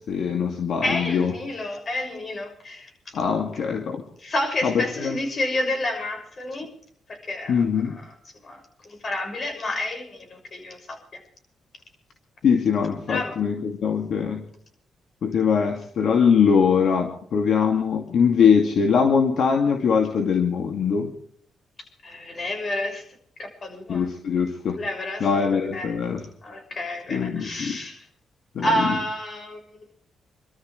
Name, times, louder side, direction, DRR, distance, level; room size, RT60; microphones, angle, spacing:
voice 1, 0.1-1.3 3.1-4.0 4.6-5.2 7.5-8.0 12.4-14.4 15.2-21.1 23.9-24.8 25.2-26.2 27.1-27.8 28.5-28.9, left 6 dB, 70° left, 3 dB, 2.4 m, -22 dB
voice 2, 0.8-2.9 4.2-6.7 7.1-8.2 8.4-11.2 13.1-13.4 22.0-23.0 23.4-24.1 24.8-25.3 25.7-25.9 26.4-28.1 28.6-29.6, left 1 dB, 45° left, 4 dB, 6.4 m, -29 dB
28.0 x 13.0 x 3.3 m, 0.63 s
cardioid pair, 85°, 0 cm